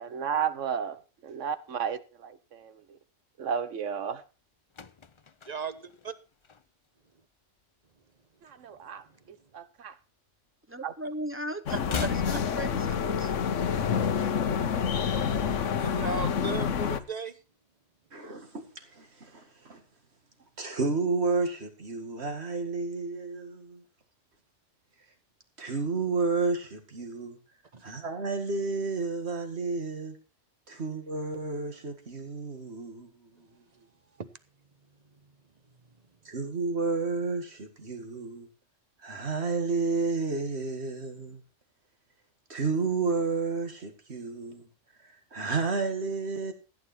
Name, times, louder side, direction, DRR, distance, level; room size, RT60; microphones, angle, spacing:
voice 1, 0.0-3.0 3.4-4.2 8.4-10.0 10.8-10.9, right 7 dB, 75° right, 1.4 m, -34 dB
sound 1, 4.4-7.0 7.3-7.6 7.9-9.4 9.6-11.0 11.2-13.4 13.6-13.7, left 5 dB, 35° left, 0.5 m, -42 dB
voice 2, 5.5-6.1 11.7-12.1 15.8-17.3 27.7-27.8 34.2-34.3, right 4 dB, 35° right, 1.0 m, -36 dB
voice 3, 10.7-13.3, equal, 10° right, 0.9 m, -37 dB
sound 2, 11.7-17.0, left 7 dB, 75° left, 1.3 m, -28 dB
voice 4, 18.1-19.8 20.6-23.8 25.6-27.4 27.8-30.2 30.7-33.4 36.2-38.5 39.0-41.4 42.5-44.7 45.0-46.5, right 4 dB, 60° right, 2.3 m, -31 dB
15.5 x 9.5 x 4.4 m
omnidirectional pair, 1.3 m